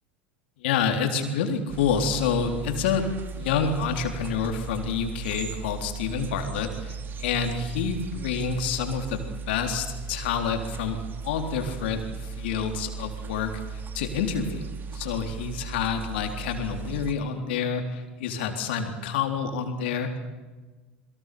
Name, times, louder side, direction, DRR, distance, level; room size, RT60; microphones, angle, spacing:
voice 1, 0.6-3.1 3.4-20.2, left 6 dB, 65° left, 5 dB, 3.9 m, -28 dB
sound 1, 1.7-17.1, right 5 dB, 35° right, 2.9 m, -37 dB
28.0 x 23.5 x 6.9 m, 1.3 s
figure-of-eight pair, 75°, 6 cm